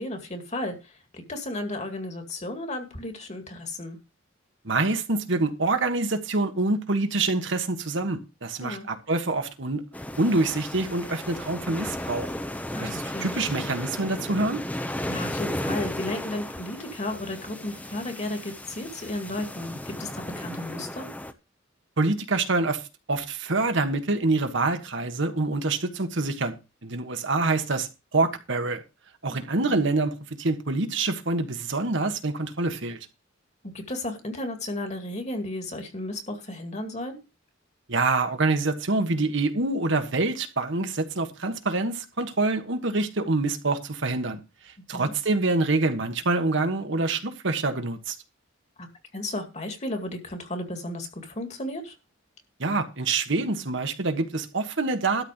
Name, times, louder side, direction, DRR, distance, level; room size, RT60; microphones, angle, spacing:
voice 1, 0.0-4.0 8.6-8.9 12.7-13.3 15.1-21.1 29.3-29.8 33.7-37.2 44.9-45.1 48.8-48.9 49.1-52.0, left 1 dB, 35° left, 2.1 m, -34 dB
voice 2, 4.6-9.8 10.2-12.3 12.8-14.6 22.0-22.8 23.1-26.5 26.8-28.8 29.2-33.0 37.9-44.4 44.6-48.2 52.6-55.3, right 3 dB, 65° right, 1.4 m, -26 dB
sound 1, 9.9-21.3, left 1 dB, 10° left, 0.8 m, -35 dB
12.5 x 4.3 x 8.1 m
head